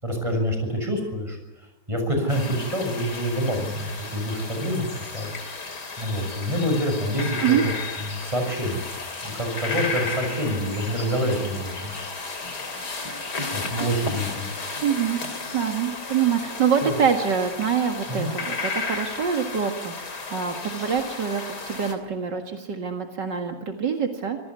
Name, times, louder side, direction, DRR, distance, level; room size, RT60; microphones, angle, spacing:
voice 1, 0.0-5.3 6.0-7.7 8.1-8.8 9.2-11.9 13.5-14.5 16.8-17.0 18.1-18.3, equal, 15° right, 4 dB, 7.0 m, -27 dB
sound 1, 2.3-21.9, left 3 dB, 60° left, 3.7 m, -33 dB
voice 2, 14.8-15.2 15.5-24.4, right 7 dB, 70° right, 4 dB, 2.5 m, -25 dB
26.5 x 18.5 x 9.7 m, 1.0 s
omnidirectional pair, 2.0 m